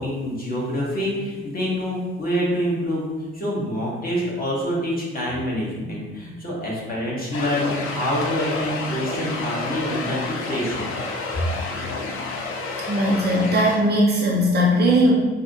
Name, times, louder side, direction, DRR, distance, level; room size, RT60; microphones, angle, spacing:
voice 1, 0.0-10.9, equal, 30° left, -5 dB, 1.3 m, -26 dB
sound 1, 7.3-13.8, left 3 dB, 45° left, 0.5 m, -30 dB
voice 2, 12.9-15.1, equal, 35° right, -3 dB, 0.6 m, -19 dB
4.6 x 2.1 x 2.9 m, 1.3 s
figure-of-eight pair, 45°, 30 cm